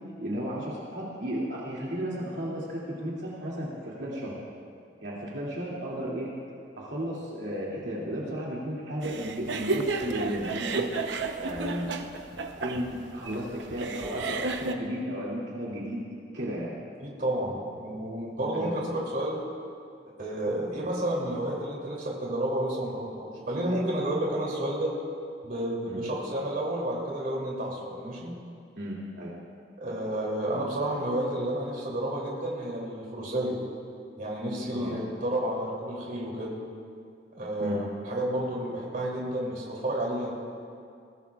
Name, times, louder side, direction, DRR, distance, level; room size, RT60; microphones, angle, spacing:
voice 1, 0.2-4.4 5.0-6.3 6.8-10.8 11.4-11.9 12.6-16.0 16.3-16.7 18.5-19.0 25.9-26.0 28.8-29.3 34.7-34.9 37.6-37.8, equal, 75° right, -6 dB, 2.6 m, -34 dB
sound 1, 9.0-14.7, right 3 dB, 90° right, 0.8 m, -32 dB
voice 2, 17.0-19.4 20.0-24.9 25.4-28.3 29.8-33.6 34.2-36.6 37.3-40.3, right 1 dB, 50° right, -3 dB, 3.0 m, -31 dB
22.0 x 17.0 x 2.4 m, 2.3 s
head